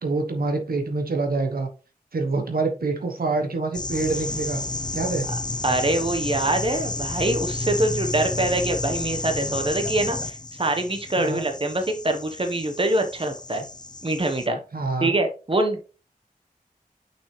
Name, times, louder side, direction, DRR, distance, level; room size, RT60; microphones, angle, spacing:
voice 1, 0.0-1.7 2.1-4.6 4.9-5.3 11.2-11.4 14.7-15.2, right 3 dB, 80° right, 4 dB, 1.2 m, -26 dB
sound 1, 3.7-14.5, left 2 dB, 30° left, 0.6 m, -31 dB
sound 2, 3.9-9.8, right 1 dB, 65° right, 2.7 m, -43 dB
voice 2, 5.6-13.6 14.0-14.6 15.0-15.8, right 2 dB, 35° right, 5 dB, 1.2 m, -24 dB
6.0 x 5.9 x 3.2 m, 0.35 s
wide cardioid pair, 60°, 15 cm